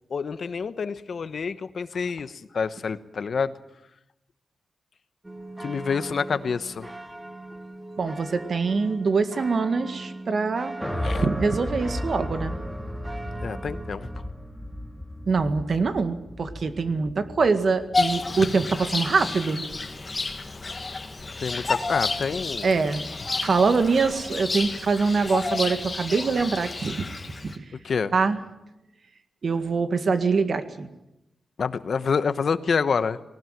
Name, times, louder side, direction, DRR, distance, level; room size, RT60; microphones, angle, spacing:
voice 1, 0.1-3.5 5.6-6.9 11.0-11.3 13.4-14.1 21.4-22.7 27.8-28.1 31.6-33.2, left 5 dB, 60° left, 13 dB, 1.1 m, -27 dB
sound 1, 5.2-14.3, right 2 dB, 15° right, 1.3 m, -40 dB
voice 2, 8.0-10.7 11.2-12.6 15.3-19.6 22.6-23.1 23.4-27.0 27.4-27.6 28.1-28.4 29.4-30.9, right 4 dB, 55° right, 9 dB, 1.9 m, -24 dB
sound 2, 10.8-19.1, left 1 dB, ahead, 2.2 m, -34 dB
Bird vocalization bird call bird song, 17.9-27.6, left 3 dB, 30° left, 2.1 m, -30 dB
20.0 x 19.0 x 9.2 m, 0.91 s
wide cardioid pair, 115°, 0 cm